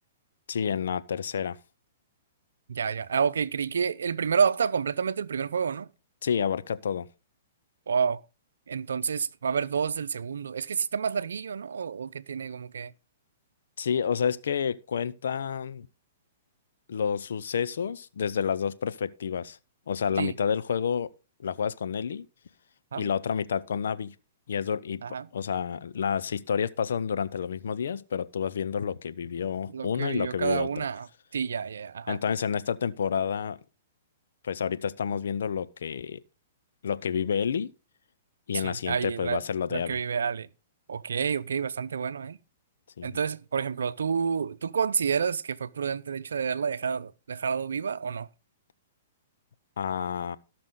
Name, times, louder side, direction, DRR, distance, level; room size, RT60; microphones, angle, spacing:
voice 1, 0.5-1.6 6.2-7.1 13.8-15.9 16.9-19.6 19.9-21.1 21.4-22.3 23.0-24.1 24.5-25.0 25.3-30.8 32.1-33.6 34.4-36.2 36.8-37.7 38.5-40.0 43.0-43.2 49.8-50.4, left 7 dB, 75° left, 0.8 m, -29 dB
voice 2, 2.7-5.9 7.9-8.2 8.7-12.9 20.2-20.3 22.9-23.1 25.0-25.3 29.7-31.1 31.3-32.2 38.5-39.4 39.7-40.5 40.9-42.4 43.0-48.3, right 6 dB, 80° right, 0.7 m, -29 dB
17.5 x 6.1 x 3.8 m
hypercardioid pair, 130°, 0 cm